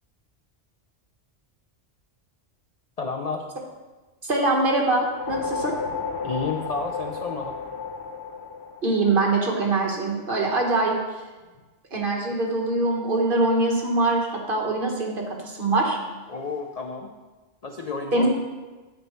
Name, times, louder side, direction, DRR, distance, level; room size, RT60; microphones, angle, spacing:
voice 1, 3.0-3.5 6.2-7.6 16.3-17.1 17.6-18.3, left 4 dB, 50° left, 2 dB, 0.5 m, -31 dB
voice 2, 4.2-5.7 8.8-10.9 11.9-16.0 18.1-18.4, right 2 dB, 50° right, 0 dB, 1.4 m, -23 dB
sound 1, 4.9-9.5, left 5 dB, 65° left, 1.0 m, -33 dB
9.4 x 8.0 x 3.1 m, 1.2 s
omnidirectional pair, 1.2 m